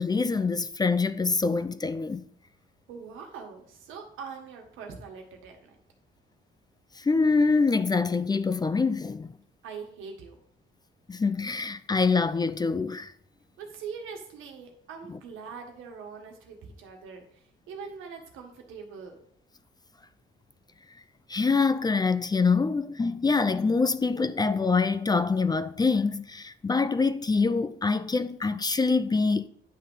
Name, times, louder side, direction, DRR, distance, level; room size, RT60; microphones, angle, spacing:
voice 1, 0.0-2.2 7.0-9.3 11.1-13.1 21.3-29.5, left 4 dB, 20° left, 0.4 m, -25 dB
voice 2, 2.9-5.8 9.6-10.4 13.6-19.2, right 5 dB, 90° right, 1.6 m, -42 dB
9.8 x 3.7 x 5.5 m
cardioid pair, 90°, 20 cm